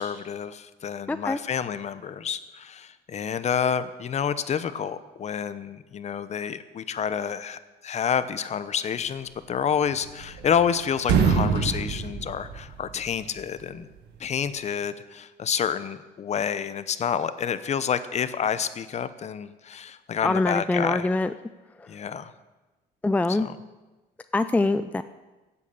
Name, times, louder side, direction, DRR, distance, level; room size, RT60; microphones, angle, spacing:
voice 1, 0.0-13.9 14.2-21.1 21.9-22.3 23.3-23.6, left 7 dB, 40° left, 14 dB, 0.8 m, -29 dB
voice 2, 1.1-1.4 20.2-21.3 23.0-23.5 24.3-25.0, left 2 dB, 10° left, 11 dB, 0.4 m, -24 dB
sound 1, 9.9-10.7 11.0-13.1, right 5 dB, 90° right, 1.7 m, -25 dB
15.5 x 8.4 x 7.0 m, 1.1 s
cardioid pair, 110°, 17 cm